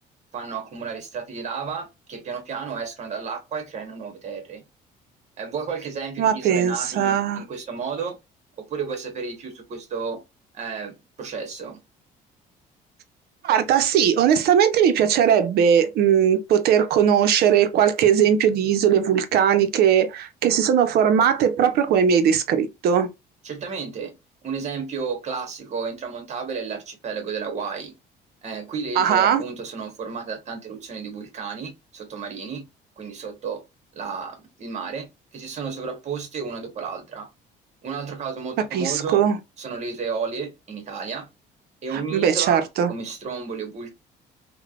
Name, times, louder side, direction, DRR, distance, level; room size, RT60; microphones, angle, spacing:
voice 1, 0.3-4.6 5.4-8.2 8.6-10.2 10.5-11.8 23.4-24.1 24.4-27.9 28.4-32.7 33.0-33.6 33.9-35.1 35.3-37.3 37.8-39.2 39.6-41.3 41.8-43.9, right 5 dB, 40° right, 1.1 m, -32 dB
voice 2, 6.2-7.4 13.4-23.1 29.0-29.4 38.7-39.4 42.1-42.9, right 8 dB, 70° right, 0.6 m, -19 dB
3.2 x 2.1 x 2.4 m
cardioid pair, 110°, 17 cm